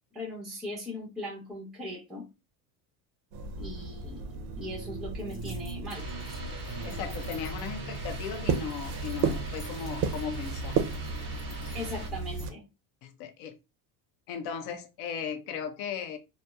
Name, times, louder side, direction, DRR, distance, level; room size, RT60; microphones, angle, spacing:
voice 1, 0.1-2.3 3.6-6.1 11.7-12.7, left 1 dB, ahead, 0.7 m, -39 dB
sound 1, 3.3-12.5, right 5 dB, 50° right, 0.5 m, -34 dB
sound 2, 5.2-12.5, left 1 dB, 20° left, 1.1 m, -54 dB
sound 3, 5.9-12.1, right 2 dB, 25° right, 1.0 m, -42 dB
voice 2, 6.8-10.8 13.0-13.6 14.3-16.2, left 7 dB, 60° left, 0.7 m, -37 dB
2.8 x 2.0 x 2.2 m
supercardioid pair, 120°, 45 cm